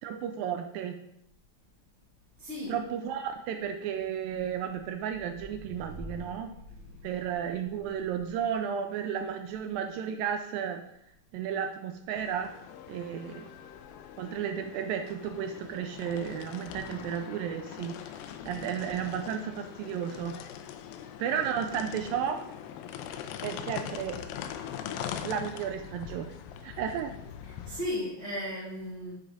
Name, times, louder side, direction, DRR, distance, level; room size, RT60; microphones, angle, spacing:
voice 1, 0.0-1.0 2.7-6.5 7.0-10.8 11.3-12.5 12.9-13.5 14.2-20.4 21.2-22.4 23.4-24.2 25.2-26.3 26.6-27.1, right 8 dB, 80° right, 6 dB, 2.1 m, -33 dB
voice 2, 2.4-2.7 6.9-7.1 27.6-29.1, left 1 dB, 25° left, -8 dB, 1.8 m, -35 dB
sound 1, 12.2-27.9, left 9 dB, 80° left, 2.3 m, -42 dB
8.0 x 7.4 x 3.9 m, 0.79 s
omnidirectional pair, 4.3 m